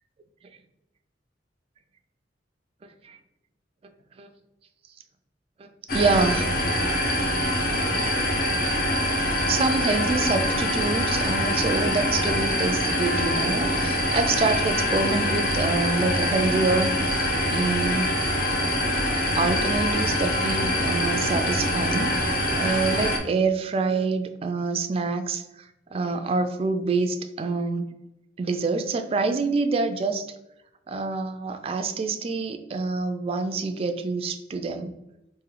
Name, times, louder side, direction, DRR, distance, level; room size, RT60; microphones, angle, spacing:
sound 1, 5.9-23.2, left 1 dB, 55° left, 0.8 m, -24 dB
voice 1, 5.9-6.5 9.5-18.1 19.4-25.4 25.9-27.9 28.4-30.3 30.9-34.9, right 3 dB, 30° right, 8 dB, 0.3 m, -26 dB
3.7 x 2.6 x 3.2 m, 0.91 s
head